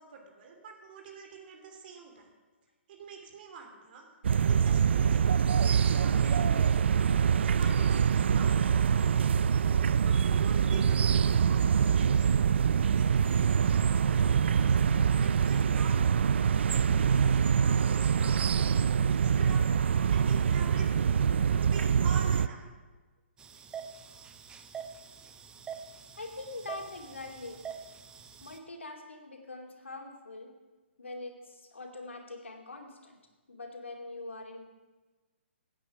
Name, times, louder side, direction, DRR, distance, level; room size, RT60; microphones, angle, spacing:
voice 1, 0.0-2.3 2.9-4.1 4.5-7.0 7.6-9.1 10.0-12.5 13.0-14.8 15.2-16.2 16.7-19.6 20.1-22.7, right 5 dB, 50° right, 3 dB, 2.9 m, -46 dB
sound 1, 4.2-22.5, right 7 dB, 65° right, 0.4 m, -25 dB
sound 2, 23.4-28.6, right 7 dB, 10° right, 0.7 m, -45 dB
voice 2, 26.1-27.6 28.4-30.5 31.0-33.2 33.5-34.6, left 2 dB, 90° left, 2 dB, 2.5 m, -43 dB
16.0 x 9.0 x 5.8 m, 1.2 s
hypercardioid pair, 135°, 7 cm